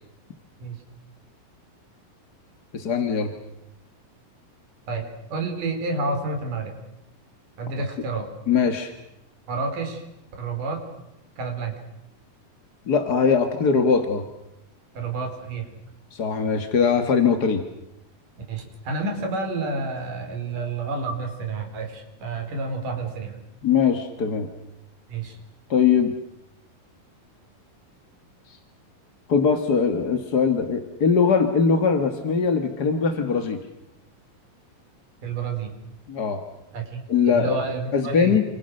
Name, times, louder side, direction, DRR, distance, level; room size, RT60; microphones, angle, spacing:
voice 1, 2.7-3.3 8.5-8.9 12.9-14.2 16.1-17.6 23.6-24.5 25.7-26.1 29.3-33.6 36.1-36.4 37.1-37.6 37.9-38.4, left 6 dB, 40° left, 7 dB, 1.5 m, -21 dB
voice 2, 5.3-6.8 7.6-8.3 9.5-10.0 10.4-10.8 11.4-11.7 14.9-15.7 18.5-23.4 25.1-25.4 35.2-35.7 36.7-38.4, right 3 dB, 60° right, 4 dB, 6.1 m, -29 dB
29.0 x 28.0 x 6.6 m, 0.85 s
omnidirectional pair, 4.1 m